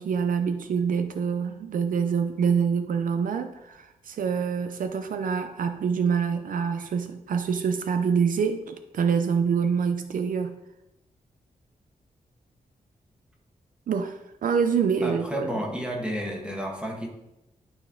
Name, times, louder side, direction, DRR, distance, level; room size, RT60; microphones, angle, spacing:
voice 1, 0.0-10.6 13.9-15.5, right 6 dB, 70° right, 8 dB, 0.5 m, -26 dB
voice 2, 15.0-17.1, equal, 5° right, 0 dB, 1.4 m, -31 dB
11.5 x 4.2 x 3.7 m, 0.91 s
wide cardioid pair, 150°, 15 cm